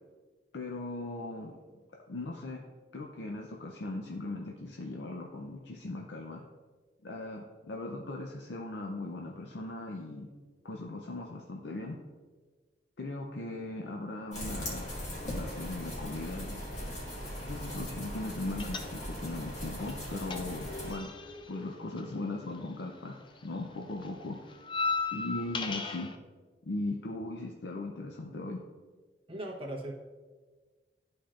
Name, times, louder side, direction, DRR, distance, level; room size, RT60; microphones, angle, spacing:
voice 1, 0.5-1.5 2.1-2.6 2.9-6.4 7.0-10.3 10.6-12.0 13.0-14.9 15.2-16.6 17.4-21.1 21.5-23.2 23.4-24.4 25.1-26.1 26.7-28.6, left 2 dB, 80° left, 0 dB, 0.6 m, -38 dB
sound 1, 14.3-20.9, left 1 dB, 45° left, 1.7 m, -39 dB
sound 2, 18.6-19.4 19.6-23.0 23.3-26.2, left 4 dB, 30° left, 0.4 m, -37 dB
voice 2, 29.3-29.9, right 1 dB, 30° right, -1 dB, 1.1 m, -38 dB
11.5 x 4.3 x 2.5 m, 1.4 s
head